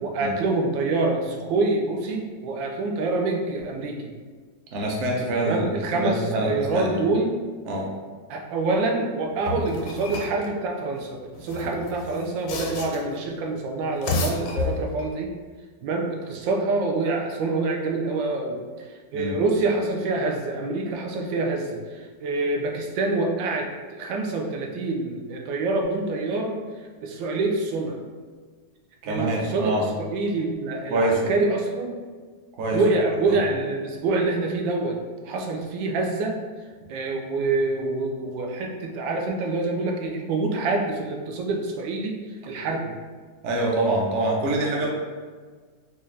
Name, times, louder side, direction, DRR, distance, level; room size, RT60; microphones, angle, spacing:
voice 1, 0.0-4.1 5.4-7.3 8.3-15.3 15.8-26.5 27.0-28.0 29.0-31.9 32.7-35.0 35.2-36.4 36.9-42.2 42.5-42.9, right 3 dB, 90° right, 1 dB, 1.3 m, -26 dB
voice 2, 4.7-5.7 5.9-7.0 7.7-7.9 19.1-19.3 29.0-29.9 30.9-31.2 32.6-32.8 43.4-44.9, right 1 dB, 60° right, -1 dB, 0.8 m, -25 dB
sound 1, 9.4-10.5 11.3-13.2 13.8-15.2, left 2 dB, 75° left, 1.3 m, -30 dB
4.1 x 2.3 x 3.2 m, 1.5 s
omnidirectional pair, 1.9 m